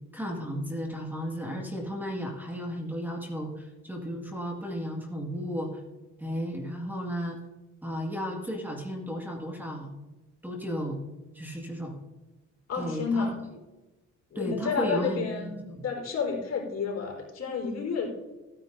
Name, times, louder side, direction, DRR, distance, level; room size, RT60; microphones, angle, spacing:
voice 1, 0.1-5.8 6.2-7.4 7.8-9.9 10.4-11.0 11.3-12.0 12.7-13.3 14.4-15.8, equal, 5° right, 0 dB, 2.0 m, -34 dB
voice 2, 12.7-13.4 14.3-15.6 15.8-18.1, left 5 dB, 55° left, -1 dB, 4.1 m, -30 dB
15.5 x 9.7 x 2.7 m, 1.1 s
cardioid pair, 90°, 30 cm